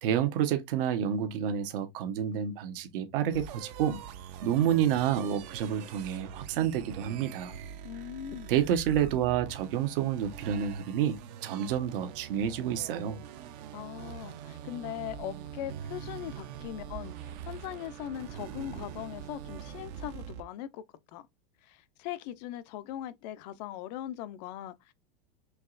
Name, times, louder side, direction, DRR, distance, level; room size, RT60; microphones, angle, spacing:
voice 1, 0.0-4.0 4.4-7.5 8.5-13.2, right 9 dB, 65° right, 1.0 m, -29 dB
sound 1, 3.3-20.4, right 9 dB, 45° right, 0.6 m, -43 dB
voice 2, 7.8-8.5 13.7-20.8 21.1-21.3 21.6-24.9, left 12 dB, 45° left, 0.5 m, -40 dB
4.6 x 2.9 x 2.4 m
supercardioid pair, 150°, 29 cm